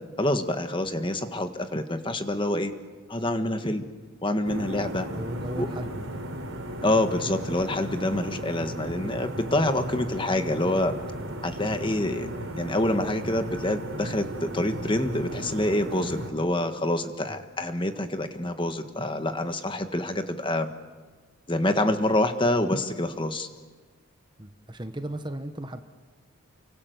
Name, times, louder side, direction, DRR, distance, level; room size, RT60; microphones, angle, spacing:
voice 1, 0.2-2.7 3.1-3.8 4.2-5.1 5.6-5.7 6.8-10.9 11.4-20.7 21.5-23.5, left 1 dB, 20° left, 7 dB, 1.6 m, -27 dB
sound 1, 4.4-16.3, right 1 dB, 65° right, 3.6 m, -36 dB
voice 2, 5.1-6.1 17.3-17.4 24.4-25.8, right 1 dB, 20° right, 8 dB, 1.1 m, -36 dB
29.5 x 24.0 x 8.0 m, 1.4 s
head